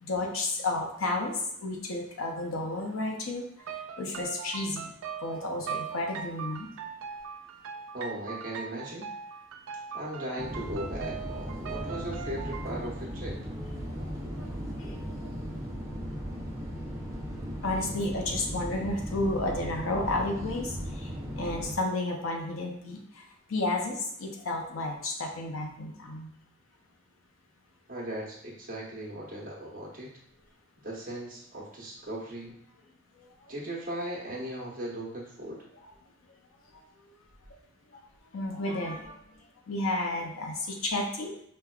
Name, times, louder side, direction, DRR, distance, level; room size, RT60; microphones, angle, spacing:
voice 1, 0.0-3.4 4.0-4.9 5.2-6.7 14.4-14.5 14.8-15.0 17.6-21.1 21.4-23.0 23.5-26.3 38.3-39.1 39.7-41.3, left 2 dB, 80° left, 2 dB, 0.7 m, -32 dB
sound 1, 3.6-12.7, right 6 dB, 80° right, 0.4 m, -40 dB
voice 2, 7.9-9.1 9.9-13.4 27.9-30.2 30.8-32.5 33.5-35.6, right 1 dB, 40° right, -3 dB, 0.9 m, -38 dB
sound 2, 10.4-21.8, equal, 15° right, 0.5 m, -37 dB
5.1 x 2.2 x 2.3 m, 0.69 s
head